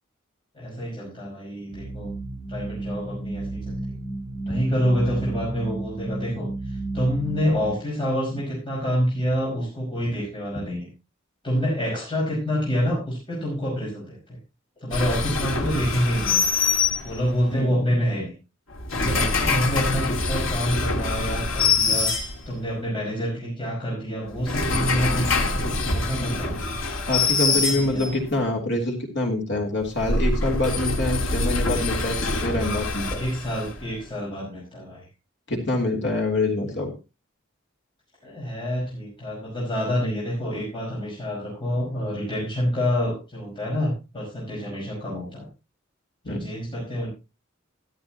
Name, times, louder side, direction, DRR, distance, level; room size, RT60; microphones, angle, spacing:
voice 1, 0.5-2.1 2.5-4.0 4.4-6.5 6.9-10.9 11.4-14.2 14.8-16.5 17.0-18.3 18.9-22.2 22.5-26.5 27.5-28.1 33.1-35.0 38.2-45.5 46.2-47.1, equal, 25° left, -5 dB, 5.3 m, -27 dB
sound 1, 1.7-7.7, right 2 dB, 45° right, 4.2 m, -32 dB
sound 2, 14.9-17.5 18.7-22.8 24.3-28.3 29.8-34.0, left 3 dB, 80° left, 2.2 m, -25 dB
voice 2, 17.5-17.9 21.9-22.0 26.1-26.3 27.1-33.2 35.5-36.9 46.2-46.4, left 2 dB, 60° left, 1 dB, 3.1 m, -26 dB
13.5 x 13.0 x 2.9 m, 0.28 s
head